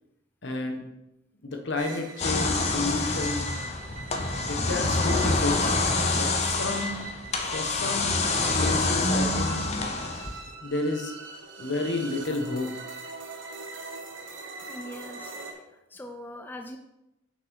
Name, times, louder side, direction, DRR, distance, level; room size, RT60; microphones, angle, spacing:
voice 1, 0.4-0.8 1.4-3.5 4.5-5.7 6.1-7.0 7.5-9.6 10.2-10.4 10.6-11.1 11.6-12.8, left 2 dB, 65° left, 3 dB, 1.3 m, -31 dB
sound 1, 1.8-15.5, right 3 dB, 80° right, 1.2 m, -42 dB
sound 2, 2.2-10.5, left 3 dB, 35° left, 0.9 m, -26 dB
voice 2, 14.7-15.6 15.9-16.8, equal, 10° left, 4 dB, 0.4 m, -41 dB
6.2 x 5.6 x 5.4 m, 0.90 s
head